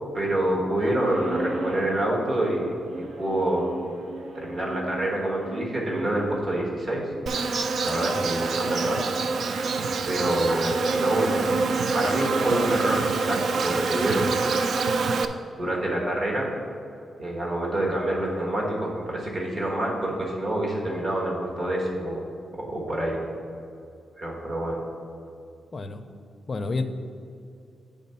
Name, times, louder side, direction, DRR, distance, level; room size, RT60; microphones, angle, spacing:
voice 1, 0.1-2.7 3.0-3.7 4.3-7.1 7.3-7.5 7.8-9.1 10.0-14.3 15.6-16.5 17.2-22.2 22.5-23.2 24.2-24.8, right 1 dB, 40° right, -2 dB, 1.3 m, -27 dB
sound 1, 1.0-1.9 2.8-6.5, right 2 dB, 85° right, 0.9 m, -36 dB
Insect, 7.3-15.3, right 4 dB, 60° right, 0.3 m, -26 dB
voice 2, 25.7-26.0 26.5-26.8, left 3 dB, 30° left, 8 dB, 0.4 m, -29 dB
8.3 x 3.6 x 5.6 m, 2.5 s
wide cardioid pair, 140°, 0 cm